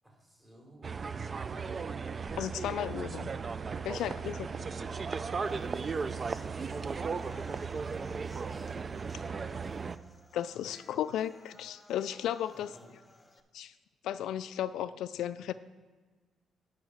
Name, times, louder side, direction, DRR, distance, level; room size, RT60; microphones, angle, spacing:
voice 1, 0.0-1.2 1.6-2.1 3.9-5.1 5.4-8.7 9.3-10.0 12.5-13.0, equal, 10° right, -1 dB, 3.3 m, -56 dB
sound 1, 0.8-10.0, right 5 dB, 35° right, 0.4 m, -36 dB
voice 2, 2.4-3.3 3.8-4.4 10.3-12.7 13.5-13.7 14.0-15.5, left 11 dB, 80° left, 14 dB, 0.3 m, -34 dB
sound 2, 5.4-13.4, left 2 dB, 15° left, 0.9 m, -56 dB
9.5 x 5.5 x 6.2 m, 1.4 s
cardioid pair, 90°, 0 cm